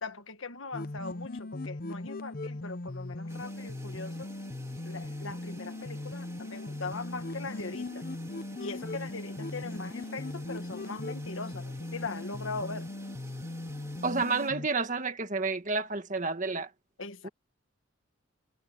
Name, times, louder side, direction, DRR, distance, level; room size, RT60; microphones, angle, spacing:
voice 1, 0.0-4.3 4.8-8.1 8.6-12.9 17.0-17.3, left 3 dB, 75° left, 1.7 m, -40 dB
sound 1, 0.7-14.7, left 2 dB, 45° left, 0.8 m, -39 dB
sound 2, 3.3-14.5, right 1 dB, 15° right, 2.6 m, -51 dB
voice 2, 14.0-16.7, right 4 dB, 40° right, 1.8 m, -30 dB
head